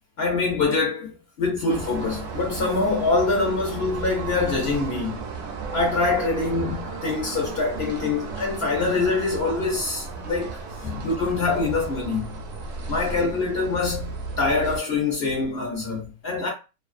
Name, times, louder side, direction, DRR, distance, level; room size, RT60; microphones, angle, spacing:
voice 1, 0.2-5.2 5.7-12.4 12.9-16.5, left 3 dB, 55° left, 0.7 m, -25 dB
sound 1, 1.7-14.8, right 4 dB, 65° right, 0.7 m, -34 dB
2.6 x 2.3 x 2.4 m
omnidirectional pair, 1.6 m